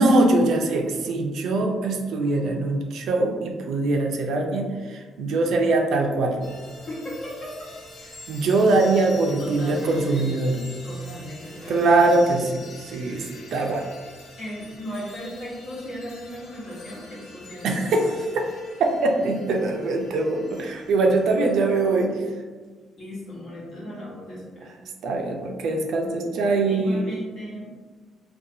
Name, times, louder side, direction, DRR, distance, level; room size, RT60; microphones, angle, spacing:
voice 1, 0.0-6.4 8.3-10.6 11.7-12.5 12.8-13.2 13.5-13.8 17.6-18.4 19.0-22.2 23.8-24.0 25.0-27.0, right 2 dB, 75° right, 2 dB, 0.4 m, -22 dB
sound 1, 6.4-22.0, left 2 dB, 90° left, 0.8 m, -46 dB
voice 2, 6.9-7.7 9.4-10.3 10.8-12.1 14.4-18.1 23.0-24.7 26.6-27.7, equal, 60° left, -6 dB, 1.1 m, -36 dB
2.5 x 2.3 x 2.6 m, 1.4 s
cardioid pair, 90°, 0 cm